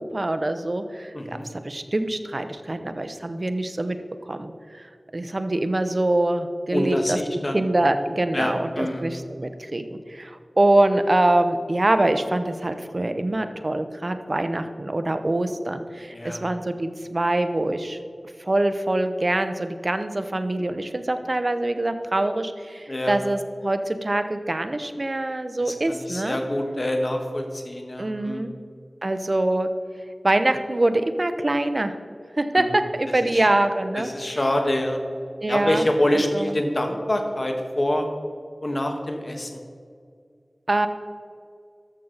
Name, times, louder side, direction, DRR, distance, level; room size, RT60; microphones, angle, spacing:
voice 1, 0.0-1.4 1.6-4.0 4.3-4.5 4.8-4.9 5.1-7.2 7.5-18.0 18.4-26.4 28.0-28.5 29.0-29.7 30.2-31.9 32.4-34.1 35.4-35.8 36.1-36.5 40.7-40.9, right 1 dB, 45° right, 9 dB, 0.7 m, -24 dB
voice 2, 1.1-1.5 6.7-7.6 7.9-8.0 8.3-9.1 16.1-16.4 22.9-23.2 25.6-28.5 32.5-32.8 33.1-33.5 34.0-35.0 35.5-38.1 38.6-39.6, left 1 dB, 40° left, 3 dB, 1.5 m, -26 dB
13.0 x 6.6 x 4.0 m, 2.3 s
wide cardioid pair, 65°, 0 cm